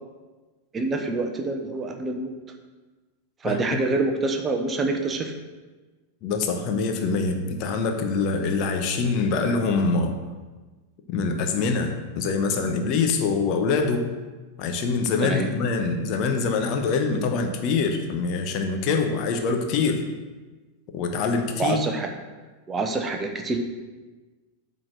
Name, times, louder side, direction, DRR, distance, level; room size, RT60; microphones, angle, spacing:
voice 1, 0.7-2.3 3.4-5.3 15.2-15.5 21.6-22.1 22.7-23.6, right 3 dB, 20° right, 4 dB, 0.9 m, -26 dB
voice 2, 6.2-10.2 11.1-14.1 14.6-20.0 20.9-21.8, left 4 dB, 40° left, 4 dB, 1.0 m, -24 dB
8.7 x 4.0 x 6.5 m, 1.3 s
figure-of-eight pair, 90°, 0 cm